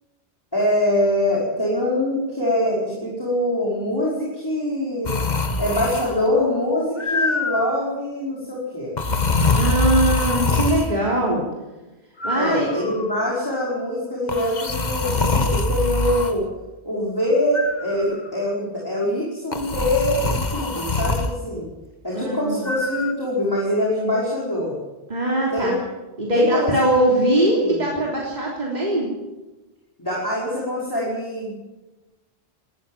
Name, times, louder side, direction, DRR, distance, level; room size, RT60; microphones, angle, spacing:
voice 1, 0.5-5.2 5.6-8.9 12.3-16.4 16.9-21.7 22.0-24.7 25.5-25.8 26.3-26.7 27.2-27.3 27.6-27.9 30.0-31.5, left 1 dB, 20° left, -5 dB, 5.3 m, -23 dB
sound 1, 5.1-6.3 7.0-7.9 9.0-10.9 12.2-13.1 14.3-16.3 17.5-18.3 19.5-21.3 22.7-23.1, left 3 dB, 45° left, 1.5 m, -24 dB
voice 2, 9.5-11.4 12.2-12.7 22.1-22.7 25.1-25.7 26.2-29.1, right 1 dB, 40° right, -3 dB, 3.6 m, -21 dB
19.5 x 14.5 x 9.3 m, 1.1 s
omnidirectional pair, 1.1 m